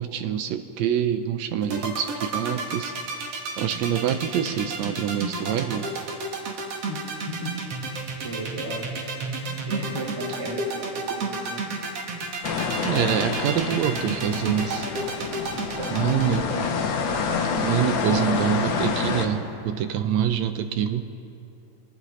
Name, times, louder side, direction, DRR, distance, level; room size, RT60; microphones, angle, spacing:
voice 1, 0.0-2.9 3.6-5.9 12.8-14.9 15.9-16.5 17.6-21.1, right 9 dB, 80° right, 9 dB, 1.7 m, -25 dB
sound 1, 1.6-16.4, right 4 dB, 55° right, 2.2 m, -31 dB
voice 2, 6.8-8.9 9.4-11.6 15.8-16.7, right 1 dB, 15° right, -8 dB, 3.3 m, -36 dB
sound 2, 12.4-19.3, left 5 dB, 65° left, 2.1 m, -27 dB
30.0 x 11.5 x 3.1 m, 2.7 s
omnidirectional pair, 3.7 m